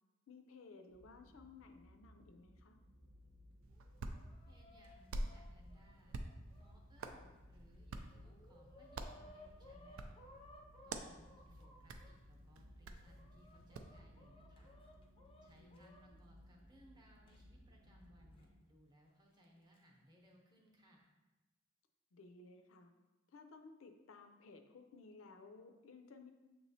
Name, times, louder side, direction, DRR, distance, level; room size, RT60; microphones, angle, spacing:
voice 1, 0.3-2.8 15.6-16.2 22.1-22.9 23.3-26.3, left 4 dB, 85° left, 6 dB, 0.5 m, -58 dB
sound 1, 0.9-18.5, equal, 70° right, 0.7 m, -62 dB
Hands, 3.6-14.0, right 2 dB, 90° right, 0.4 m, -49 dB
Chicken rooster, 3.7-7.2 7.7-7.8 8.1-12.1 12.8-16.0 17.3-17.4 18.4-18.5 19.4-19.8, left 1 dB, 25° left, 0.4 m, -62 dB
voice 2, 4.5-6.2 6.5-10.2 10.8-14.8 15.4-21.1, equal, 20° right, -2 dB, 0.7 m, -67 dB
6.5 x 3.0 x 2.7 m, 1.1 s
head